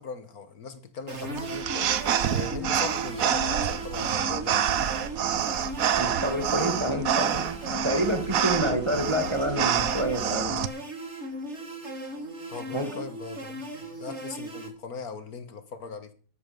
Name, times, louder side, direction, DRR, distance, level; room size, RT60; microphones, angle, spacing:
voice 1, 0.0-1.9 2.3-4.7 12.5-16.1, left 5 dB, 55° left, 2.0 m, -40 dB
sound 1, 1.1-14.7, right 1 dB, 35° right, 2.6 m, -37 dB
sound 2, 1.4-10.7, right 9 dB, 55° right, 1.1 m, -27 dB
voice 2, 6.0-10.6 12.7-13.0, right 1 dB, 15° right, 2.2 m, -28 dB
12.5 x 12.0 x 5.3 m
omnidirectional pair, 2.0 m